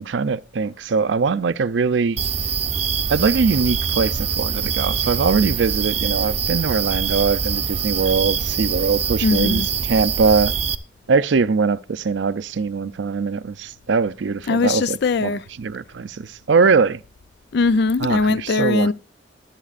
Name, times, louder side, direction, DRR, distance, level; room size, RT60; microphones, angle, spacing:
voice 1, 0.0-2.2 3.1-10.5 11.1-17.0 18.0-18.9, right 5 dB, 90° right, 0.5 m, -21 dB
sound 1, 2.2-10.8, right 6 dB, 35° right, 0.6 m, -24 dB
voice 2, 9.2-9.7 14.5-15.4 17.5-18.9, left 4 dB, 65° left, 0.4 m, -20 dB
21.5 x 7.5 x 2.5 m
head